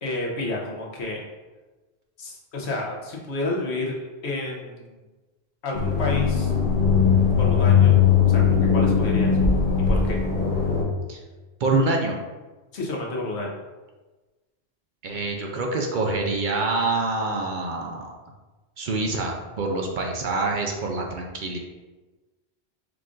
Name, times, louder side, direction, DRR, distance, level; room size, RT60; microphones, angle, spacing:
voice 1, 0.0-1.2 2.2-4.9 5.6-6.5 7.4-8.0 8.3-9.6 9.9-10.2 12.7-13.5, left 2 dB, 85° left, -1 dB, 1.1 m, -30 dB
sound 1, 5.7-10.8, left 6 dB, 55° left, 0.9 m, -19 dB
voice 2, 11.6-12.2 15.0-18.1 18.8-21.6, right 3 dB, 55° right, 1 dB, 0.6 m, -26 dB
4.8 x 2.4 x 3.7 m, 1.2 s
omnidirectional pair, 1.1 m